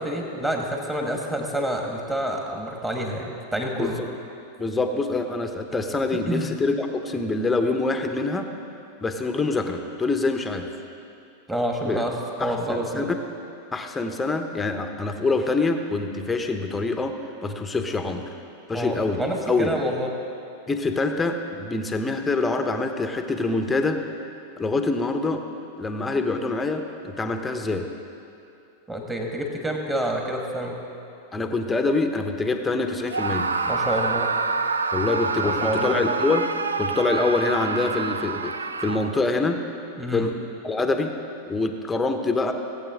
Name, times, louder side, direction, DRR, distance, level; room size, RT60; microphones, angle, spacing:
voice 1, 0.0-4.0 6.1-6.5 11.5-13.1 18.7-20.1 28.9-30.8 33.6-34.3 35.4-36.0 40.0-40.3, right 1 dB, 10° right, 1 dB, 1.6 m, -28 dB
voice 2, 3.7-4.1 4.6-8.5 9.0-10.7 11.8-12.0 12.4-13.0 13.7-17.1 17.4-18.3 18.7-19.2 19.5-19.7 20.7-24.0 24.6-25.4 25.8-27.9 31.3-33.5 34.9-36.5 36.8-38.5 38.8-39.6 40.1-40.4 40.6-41.1 41.5-42.5, left 3 dB, 10° left, 6 dB, 0.9 m, -25 dB
Screaming, 33.1-39.3, right 4 dB, 75° right, 0.4 m, -27 dB
17.5 x 8.4 x 3.7 m, 2.6 s
figure-of-eight pair, 90°, 0 cm